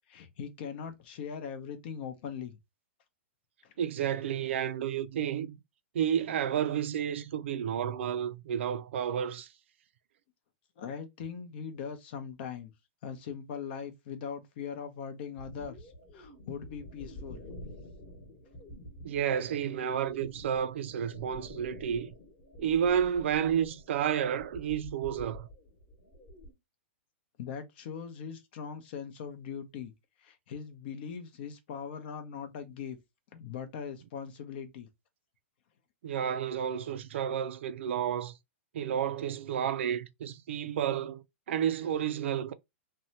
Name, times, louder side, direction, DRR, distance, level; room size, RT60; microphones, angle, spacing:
voice 1, 0.0-2.5 3.6-3.7 10.8-12.7 13.0-17.5 27.4-29.9 30.2-33.0 33.3-34.9, left 7 dB, 50° left, 0.7 m, -40 dB
voice 2, 3.8-5.6 5.9-9.5 19.0-22.1 22.6-25.5 36.0-38.3 38.7-42.5, right 9 dB, 65° right, 0.4 m, -31 dB
sound 1, 15.4-26.5, left 1 dB, 25° left, 1.0 m, -49 dB
2.7 x 2.2 x 2.7 m
hypercardioid pair, 150°, 7 cm